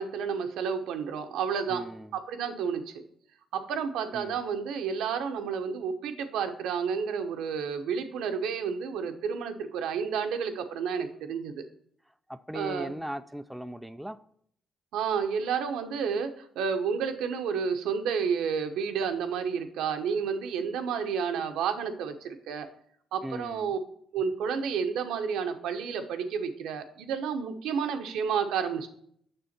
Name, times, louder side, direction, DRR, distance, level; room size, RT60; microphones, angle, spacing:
voice 1, 0.0-1.8 2.1-3.0 3.5-11.6 12.5-12.9 14.9-22.7 23.1-23.8 24.1-28.9, right 6 dB, 85° right, 6 dB, 1.0 m, -31 dB
voice 2, 1.7-2.2 4.1-4.4 12.3-14.2 23.2-23.7, equal, 5° right, 10 dB, 0.4 m, -38 dB
6.8 x 6.3 x 4.4 m, 0.64 s
cardioid pair, 90°, 0 cm